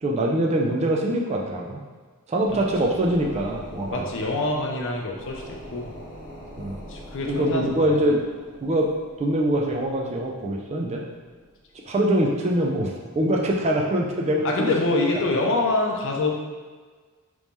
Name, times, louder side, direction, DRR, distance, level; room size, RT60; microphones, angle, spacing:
voice 1, 0.0-1.8 2.3-4.1 6.6-6.8 7.3-8.2 8.6-8.9 9.2-11.0 11.8-14.7, right 1 dB, 30° right, -1 dB, 0.4 m, -23 dB
sound 1, 2.4-12.4 12.8-12.9, equal, 30° left, 1.4 m, -44 dB
voice 2, 3.9-5.9 6.9-8.0 14.4-16.3, left 2 dB, 60° left, 0 dB, 0.5 m, -25 dB
3.0 x 2.7 x 3.5 m, 1.4 s
head